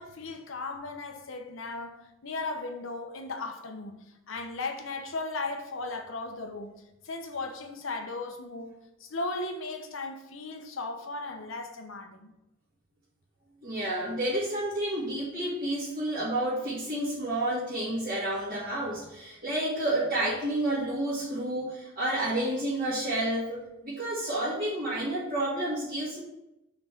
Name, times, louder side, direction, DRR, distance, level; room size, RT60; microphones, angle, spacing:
voice 1, 0.0-12.3 17.5-17.6, left 3 dB, 75° left, 0.9 m, -37 dB
voice 2, 13.6-26.2, right 1 dB, 45° right, 2.2 m, -30 dB
5.9 x 3.8 x 5.9 m
head